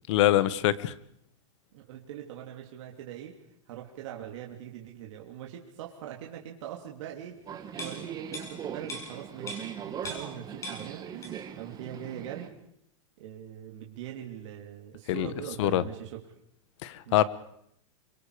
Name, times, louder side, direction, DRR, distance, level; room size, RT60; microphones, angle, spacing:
voice 1, 0.1-0.9 15.1-15.3 15.6-15.8 16.8-17.2, left 13 dB, 60° left, 16 dB, 1.4 m, -24 dB
voice 2, 1.7-3.4 3.7-7.4 7.7-12.6 13.2-16.2 17.1-17.2, right 10 dB, 65° right, 0 dB, 3.3 m, -42 dB
Subway metro underground, 7.5-12.5, right 8 dB, 20° right, 1.8 m, -40 dB
sound 1, 7.7-10.4 10.6-11.6 11.9-12.1, left 1 dB, 20° left, 7.1 m, -41 dB
27.0 x 25.0 x 5.1 m, 0.73 s
supercardioid pair, 145°, 17 cm